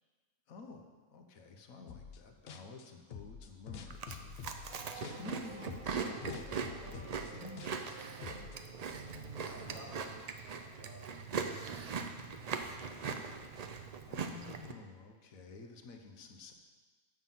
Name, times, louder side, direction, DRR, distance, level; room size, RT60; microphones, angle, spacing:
voice 1, 0.5-7.6 14.1-16.5, left 4 dB, 80° left, 4 dB, 1.3 m, -51 dB
sound 1, 1.9-2.2 2.5-5.4 5.7-8.6, left 6 dB, 60° left, 0.7 m, -48 dB
Chewing mastication, 3.9-14.7, right 5 dB, 85° right, 0.3 m, -41 dB
sound 2, 4.7-9.9, right 4 dB, 45° right, 0.9 m, -52 dB
voice 2, 9.4-11.1 11.6-13.8, right 1 dB, 65° right, -5 dB, 2.5 m, -56 dB
7.5 x 6.2 x 5.5 m, 1.4 s
omnidirectional pair, 1.4 m